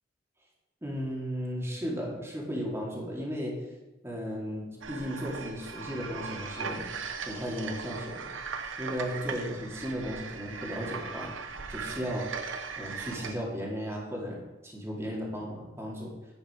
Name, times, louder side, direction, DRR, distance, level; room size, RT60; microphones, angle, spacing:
voice 1, 0.8-3.6 4.0-6.9 7.2-8.3 8.8-11.3 11.7-12.3 12.8-16.1, equal, 15° right, -2 dB, 2.3 m, -35 dB
sound 1, 4.8-13.4, right 5 dB, 85° right, 1.0 m, -38 dB
9.9 x 7.9 x 5.0 m, 1.1 s
head